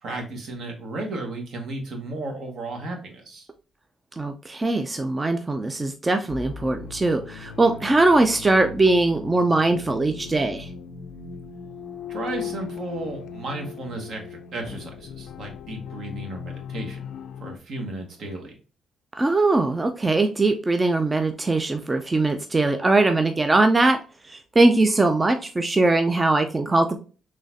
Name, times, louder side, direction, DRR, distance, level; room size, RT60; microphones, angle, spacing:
voice 1, 0.0-3.5 12.1-17.1 17.4-18.6, right 2 dB, 65° right, 3 dB, 1.2 m, -34 dB
voice 2, 4.2-10.7 19.2-24.0 24.3-27.0, right 2 dB, 20° right, 6 dB, 0.4 m, -21 dB
sound 1, 6.3-17.6, left 7 dB, 75° left, 0.3 m, -38 dB
3.9 x 3.1 x 2.6 m, 0.36 s
cardioid pair, 90°, 0 cm